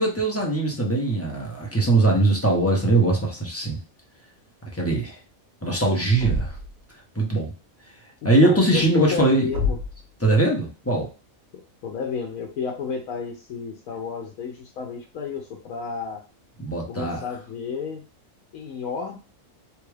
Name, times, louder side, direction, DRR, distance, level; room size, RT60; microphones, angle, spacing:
voice 1, 0.0-3.8 4.8-5.2 5.6-6.5 7.2-7.5 8.2-9.5 10.2-11.1 16.6-17.2, right 2 dB, 15° left, -2 dB, 0.7 m, -21 dB
Thump thud, 6.1-6.8 9.5-10.0, left 2 dB, 90° right, 1.2 m, -27 dB
voice 2, 8.4-9.8 11.5-16.2 16.9-18.0 18.5-19.2, left 5 dB, 85° left, 2 dB, 1.1 m, -31 dB
3.3 x 2.4 x 3.2 m, 0.34 s
omnidirectional pair, 1.4 m